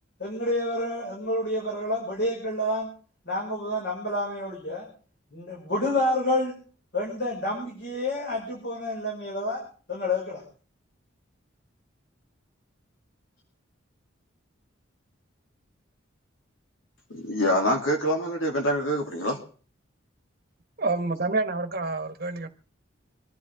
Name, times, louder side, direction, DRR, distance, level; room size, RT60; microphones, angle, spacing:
voice 1, 0.2-2.9 3.3-4.8 5.3-6.5 6.9-9.6 9.9-10.4, left 1 dB, 55° left, 5.5 m, -28 dB
voice 2, 17.1-19.4, equal, 80° left, 2.7 m, -25 dB
voice 3, 20.8-22.5, right 3 dB, 50° right, 1.1 m, -28 dB
26.0 x 10.5 x 3.5 m
head